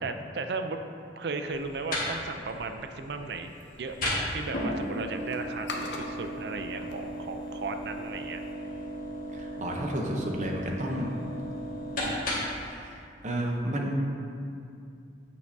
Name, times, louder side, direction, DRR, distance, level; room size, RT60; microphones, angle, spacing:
voice 1, 0.0-0.8 1.1-3.5 3.8-8.4, right 3 dB, 65° right, 7 dB, 0.5 m, -35 dB
sound 1, 1.5-12.7, equal, 50° left, 1.5 m, -35 dB
sound 2, 3.4-8.5, left 2 dB, 75° left, 0.7 m, -45 dB
voice 2, 9.3-11.1 12.6-13.0 13.2-13.9, right 1 dB, 45° right, 0 dB, 0.8 m, -31 dB
8.3 x 6.5 x 2.7 m, 2.4 s
head